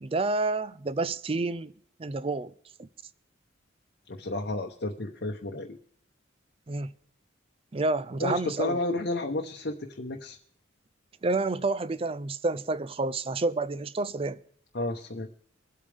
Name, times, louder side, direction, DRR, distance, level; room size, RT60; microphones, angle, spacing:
voice 1, 0.0-1.7 2.0-2.5 2.8-2.9 6.7-6.9 7.7-8.8 11.2-14.4, right 3 dB, 30° right, 0.4 m, -29 dB
voice 2, 4.1-5.8 8.2-10.4 14.7-15.3, left 2 dB, 55° left, 1.0 m, -32 dB
24.5 x 8.5 x 3.5 m
head